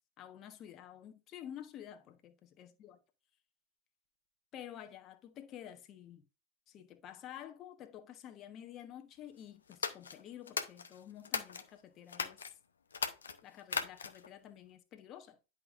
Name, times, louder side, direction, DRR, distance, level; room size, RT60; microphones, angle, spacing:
voice 1, 0.2-3.0 4.5-6.2 6.7-12.4 13.4-15.4, left 10 dB, 35° left, 1.1 m, -50 dB
sound 1, 9.7-11.7 12.1-12.5 12.9-14.3, left 6 dB, 70° left, 0.8 m, -38 dB
10.5 x 5.3 x 2.5 m
figure-of-eight pair, 90°, 0 cm